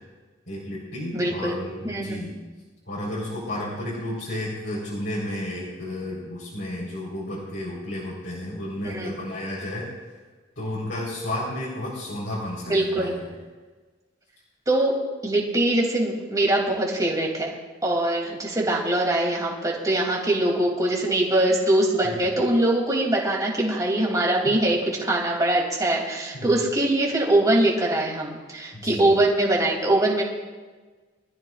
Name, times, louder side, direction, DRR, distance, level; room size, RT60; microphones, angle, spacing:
voice 1, 0.5-2.4 2.9-9.9 10.6-13.3 22.0-22.3 26.3-26.6 28.7-29.2, left 1 dB, 60° left, -6 dB, 4.3 m, -32 dB
voice 2, 1.1-1.5 1.8-2.2 8.8-9.1 12.7-13.1 14.7-14.9 15.2-17.5 17.8-30.2, right 1 dB, 20° right, -2 dB, 3.1 m, -22 dB
24.5 x 14.0 x 2.5 m, 1.4 s
head